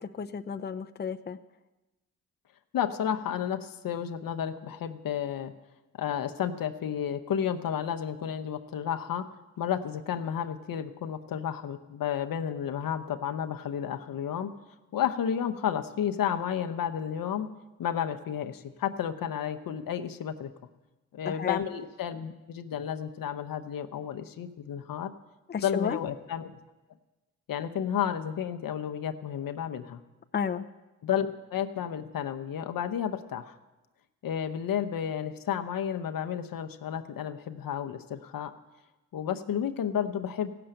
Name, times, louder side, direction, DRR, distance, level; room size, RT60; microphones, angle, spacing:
voice 1, 0.0-1.4 21.3-21.6 25.5-26.0 30.3-30.7, left 6 dB, 30° left, 8 dB, 0.6 m, -32 dB
voice 2, 2.7-5.5 6.0-9.3 9.6-14.5 14.9-17.5 17.8-20.5 21.1-25.1 25.6-26.6 27.5-30.0 31.0-33.6 34.2-38.5 39.1-40.5, left 9 dB, 70° left, 9 dB, 0.9 m, -32 dB
16.0 x 6.8 x 8.9 m, 1.1 s
cardioid pair, 60°, 35 cm